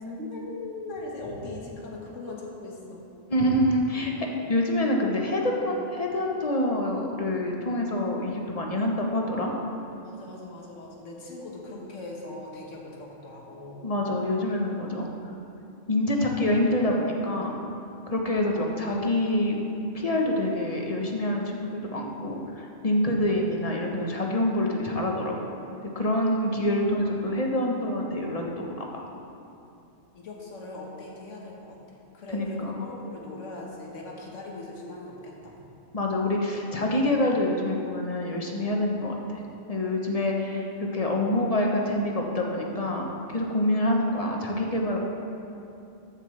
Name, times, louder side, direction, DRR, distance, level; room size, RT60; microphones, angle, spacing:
voice 1, 0.1-3.1 10.0-13.9 30.1-31.8 32.1-35.6, left 2 dB, 90° left, -2 dB, 1.6 m, -40 dB
voice 2, 3.3-9.5 13.8-15.1 15.9-17.5 18.1-19.5 19.9-25.6 25.9-29.0 32.3-32.7 35.9-39.4 39.7-45.0, left 1 dB, 35° left, 0 dB, 0.9 m, -26 dB
13.5 x 7.3 x 3.2 m, 2.7 s
omnidirectional pair, 1.2 m